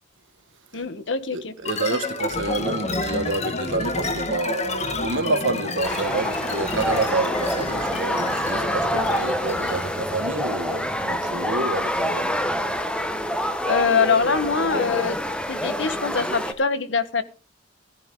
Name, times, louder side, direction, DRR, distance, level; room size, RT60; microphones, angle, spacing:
voice 1, 0.7-1.5 8.9-9.3 13.6-15.2 15.5-17.2, left 5 dB, 75° left, 1.4 m, -23 dB
voice 2, 1.3-12.4, right 3 dB, 80° right, 1.7 m, -28 dB
sound 1, 1.6-9.9, left 2 dB, 35° left, 1.7 m, -29 dB
sound 2, 5.8-16.5, equal, 5° left, 1.2 m, -26 dB
15.5 x 13.5 x 3.8 m
head